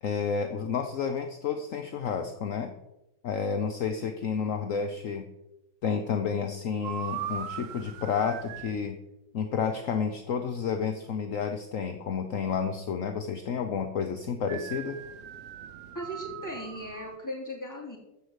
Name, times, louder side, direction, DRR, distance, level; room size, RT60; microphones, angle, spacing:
voice 1, 0.0-2.7 3.2-5.3 5.8-9.0 9.3-15.0, left 6 dB, 55° left, 7 dB, 0.9 m, -30 dB
sound 1, 6.8-8.8 14.5-17.2, right 9 dB, 70° right, 0.7 m, -39 dB
voice 2, 15.9-18.0, equal, 10° left, -2 dB, 3.2 m, -37 dB
14.5 x 4.9 x 8.1 m, 0.94 s
omnidirectional pair, 2.2 m